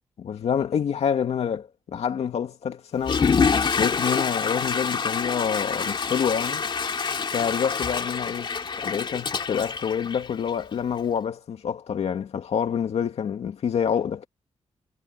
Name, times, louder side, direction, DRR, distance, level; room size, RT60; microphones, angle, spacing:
voice 1, 0.2-3.3 3.8-6.6 7.3-8.5 8.8-14.3, left 7 dB, 80° left, 2.4 m, -27 dB
Water / Toilet flush, 3.0-10.7, left 5 dB, 50° left, 2.6 m, -26 dB
wide cardioid pair, 115°, 11 cm